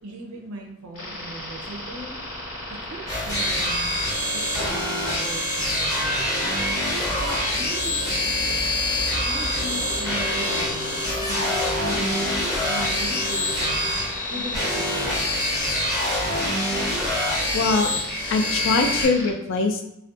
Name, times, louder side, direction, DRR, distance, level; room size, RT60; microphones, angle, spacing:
voice 1, 0.0-2.2 2.7-4.0 4.3-6.5 7.1-8.7 9.1-12.3 12.6-15.3, right 1 dB, 75° right, 0 dB, 0.6 m, -38 dB
sound 1, 0.9-19.3, left 1 dB, 85° left, 0.8 m, -36 dB
sound 2, 3.1-19.0, left 1 dB, 15° left, 0.7 m, -25 dB
sound 3, 5.3-15.4, left 1 dB, 15° right, 0.4 m, -38 dB
voice 2, 17.5-17.9 18.3-19.9, left 3 dB, 60° left, 5 dB, 0.3 m, -22 dB
2.4 x 2.2 x 2.5 m, 0.80 s
head